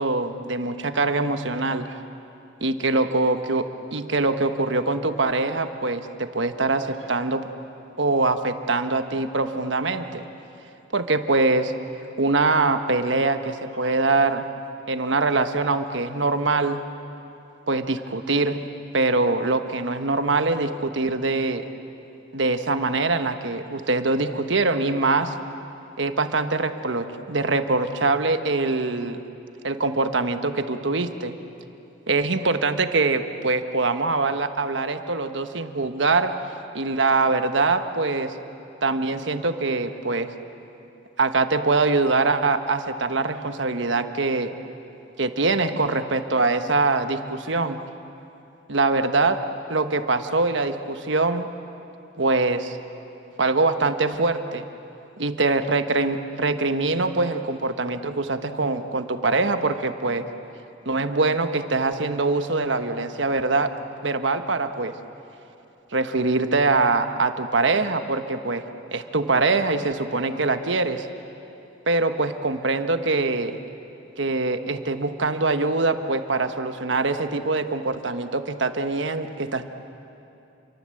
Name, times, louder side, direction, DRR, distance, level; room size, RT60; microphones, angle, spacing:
voice 1, 0.0-2.0 2.6-7.5 8.0-10.2 10.9-11.7 12.2-14.4 14.9-16.8 17.7-18.6 18.9-21.7 22.3-25.3 26.0-29.2 29.6-31.4 32.1-36.4 36.7-38.3 38.8-40.3 41.2-44.5 45.2-47.8 48.7-49.4 49.7-51.5 52.2-52.8 53.4-54.7 55.2-60.2 60.8-63.7 64.0-64.9 65.9-68.6 68.9-71.1 71.9-73.6 74.2-79.7, right 3 dB, 70° right, 8 dB, 1.3 m, -23 dB
29.0 x 23.0 x 7.8 m, 2.8 s
head